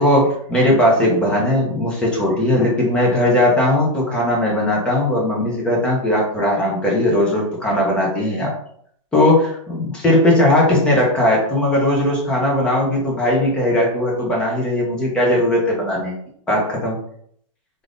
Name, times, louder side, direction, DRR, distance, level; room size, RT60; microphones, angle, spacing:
voice 1, 0.0-8.5 9.1-16.1 16.5-17.0, left 1 dB, 5° left, -3 dB, 0.5 m, -18 dB
2.5 x 2.4 x 3.3 m, 0.65 s
hypercardioid pair, 165°, 17 cm